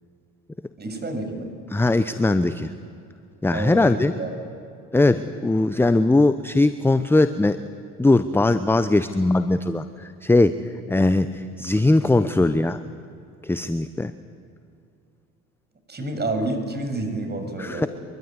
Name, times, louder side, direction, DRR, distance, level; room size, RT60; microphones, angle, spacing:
voice 1, 0.8-1.5 3.5-4.3 15.9-17.9, right 2 dB, 25° right, 6 dB, 7.0 m, -29 dB
voice 2, 1.7-2.7 3.4-4.1 4.9-7.6 8.0-10.6 10.9-12.8 13.4-14.1 17.6-17.9, left 2 dB, 5° left, 12 dB, 0.8 m, -20 dB
24.5 x 23.5 x 9.7 m, 2.6 s
figure-of-eight pair, 65°, 42 cm